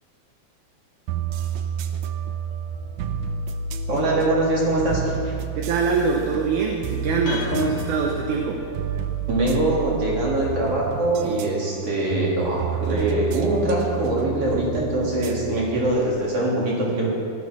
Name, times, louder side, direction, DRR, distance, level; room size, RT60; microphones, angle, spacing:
sound 1, 1.1-16.3, right 6 dB, 85° right, 1.6 m, -30 dB
voice 1, 3.9-5.3 9.3-17.1, right 1 dB, 40° right, -4 dB, 4.2 m, -23 dB
voice 2, 5.6-8.6, right 5 dB, 65° right, 1 dB, 2.2 m, -24 dB
sound 2, 7.3-9.3, left 4 dB, 65° left, 2.6 m, -33 dB
16.0 x 13.0 x 6.2 m, 2.6 s
omnidirectional pair, 4.3 m